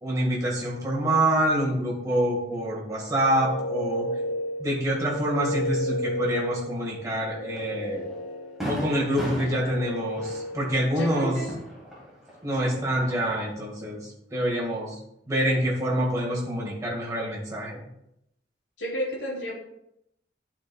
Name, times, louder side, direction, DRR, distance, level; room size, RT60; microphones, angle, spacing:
voice 1, 0.0-4.1 4.6-8.1 8.7-11.3 12.4-15.0 15.3-17.8, right 1 dB, 15° right, -4 dB, 1.6 m, -26 dB
sound 1, 3.0-10.8, left 1 dB, 30° left, 0.8 m, -33 dB
Fireworks, 7.6-7.7 8.1-8.2 8.6-12.4 12.7-13.5, equal, ahead, 1.5 m, -36 dB
voice 2, 10.9-11.5 12.6-12.7 18.8-19.5, equal, 75° left, -3 dB, 1.3 m, -32 dB
10.0 x 4.3 x 2.2 m, 0.79 s
head